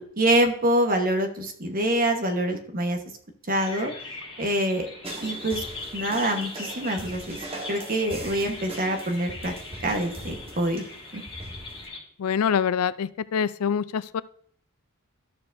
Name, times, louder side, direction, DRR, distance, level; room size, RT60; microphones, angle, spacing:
voice 1, 0.2-3.0 3.5-3.9 4.4-4.9 5.2-5.6 5.9-7.4 7.7-9.5 9.8-10.8 11.1-11.2, right 1 dB, 40° right, 4 dB, 1.2 m, -25 dB
sound 1, 3.6-12.0, left 3 dB, 25° left, 3.6 m, -40 dB
sound 2, 5.0-11.9, right 2 dB, 25° right, 1.3 m, -40 dB
voice 2, 12.2-14.2, left 7 dB, 80° left, 17 dB, 0.4 m, -25 dB
12.5 x 6.8 x 2.6 m, 0.63 s
head